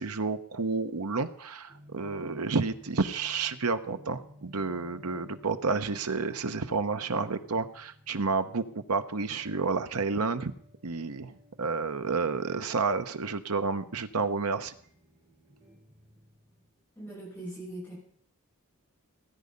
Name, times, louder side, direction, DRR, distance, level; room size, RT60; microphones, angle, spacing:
voice 1, 0.0-10.5 10.8-14.7, right 4 dB, 85° right, 9 dB, 1.0 m, -30 dB
sound 1, 1.7-16.8, left 1 dB, 30° right, 3.9 m, -57 dB
voice 2, 17.0-18.0, right 1 dB, 10° left, -7 dB, 5.8 m, -40 dB
18.0 x 9.7 x 5.3 m, 0.62 s
head